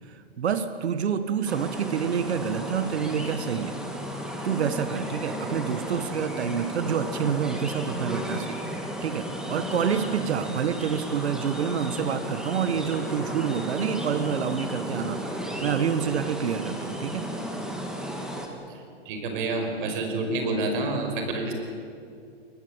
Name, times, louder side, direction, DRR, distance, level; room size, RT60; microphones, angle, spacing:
voice 1, 0.0-3.8 4.4-17.3, right 7 dB, 80° right, 11 dB, 1.5 m, -28 dB
sound 1, 1.5-18.5, equal, ahead, 2.8 m, -34 dB
voice 2, 19.1-21.5, right 2 dB, 50° right, 5 dB, 5.3 m, -28 dB
23.5 x 20.0 x 8.8 m, 2.5 s
hypercardioid pair, 135°, 32 cm